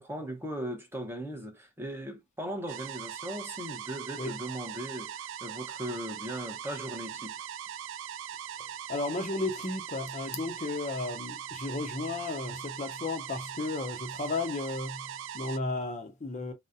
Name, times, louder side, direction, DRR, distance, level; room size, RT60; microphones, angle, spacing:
voice 1, 0.0-7.4, right 1 dB, 10° right, 0.7 m, -38 dB
sound 1, 2.7-15.6, right 9 dB, 65° right, 0.3 m, -40 dB
voice 2, 8.9-16.5, left 3 dB, 35° left, 0.5 m, -34 dB
3.9 x 2.1 x 2.5 m
head